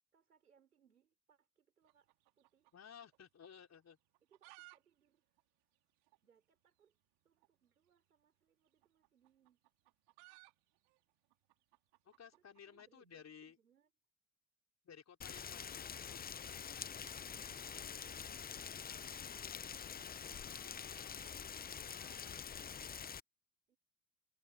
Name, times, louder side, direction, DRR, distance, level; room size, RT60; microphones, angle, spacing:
voice 1, 0.1-2.1 2.4-2.7 4.2-5.4 6.2-7.0 7.2-9.6 12.3-13.9 17.3-19.6 23.7-23.8, right 7 dB, 90° right, 4.9 m, -73 dB
sound 1, 1.8-3.2 3.4-3.5 4.0-4.8 5.0-5.1 5.4-5.5 6.1-6.2 7.3-7.5 8.7-12.9, right 29 dB, 65° right, 2.5 m, -62 dB
voice 2, 2.7-4.0 12.0-13.6 14.8-16.9 20.1-22.5, left 7 dB, 35° left, 4.9 m, -59 dB
Rain, 15.2-23.2, left 7 dB, 20° left, 0.7 m, -46 dB
figure-of-eight pair, 60°, 44 cm